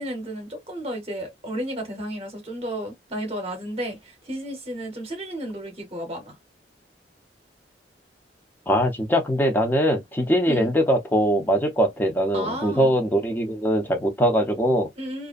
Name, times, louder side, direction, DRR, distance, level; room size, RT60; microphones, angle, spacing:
voice 1, 0.0-6.4 10.5-10.7 12.3-12.9 15.0-15.3, equal, 35° right, 0.9 m, -32 dB
voice 2, 8.7-14.9, equal, 10° left, 0.6 m, -22 dB
2.4 x 2.1 x 2.4 m
head